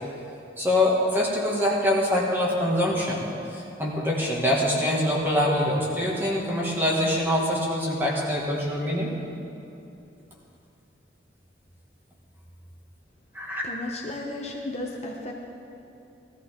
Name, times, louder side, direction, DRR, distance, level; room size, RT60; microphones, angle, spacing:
voice 1, 0.6-3.3 3.5-9.1 13.3-13.6, left 1 dB, 10° right, -4 dB, 2.0 m, -24 dB
voice 2, 13.6-15.3, left 1 dB, 35° left, -1 dB, 1.0 m, -34 dB
18.0 x 14.0 x 3.8 m, 2.8 s
head